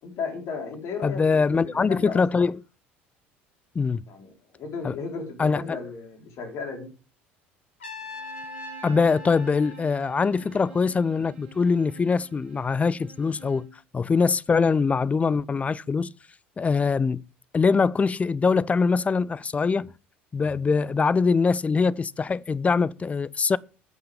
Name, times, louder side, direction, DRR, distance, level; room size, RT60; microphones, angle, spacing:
voice 1, 0.0-2.5 4.1-6.9, left 5 dB, 50° left, 4.5 m, -35 dB
voice 2, 1.0-2.6 3.7-4.0 4.8-4.9 5.4-5.8 8.8-13.7 13.9-16.1 16.6-17.2 17.5-19.9 20.3-23.6, left 5 dB, 20° left, 0.6 m, -23 dB
Trumpet, 7.8-10.8, left 2 dB, 75° left, 3.1 m, -41 dB
Bowed string instrument, 8.0-13.8, right 4 dB, 70° right, 3.1 m, -49 dB
21.0 x 8.7 x 3.6 m
figure-of-eight pair, 60°, 6 cm